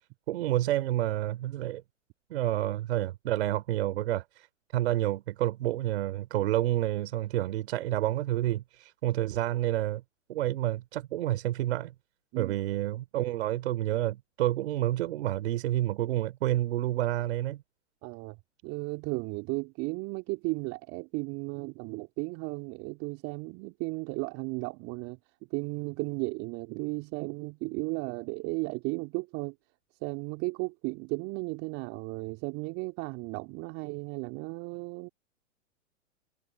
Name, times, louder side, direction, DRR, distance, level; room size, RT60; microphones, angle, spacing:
voice 1, 0.3-1.8 2.3-4.5 4.7-10.0 10.3-11.9 12.3-17.6, right 14 dB, 60° right, 3.5 m, -29 dB
voice 2, 18.0-18.4 18.6-25.2 25.5-29.6 30.0-35.1, right 27 dB, 40° right, 2.4 m, -35 dB
figure-of-eight pair, 105°, 37 cm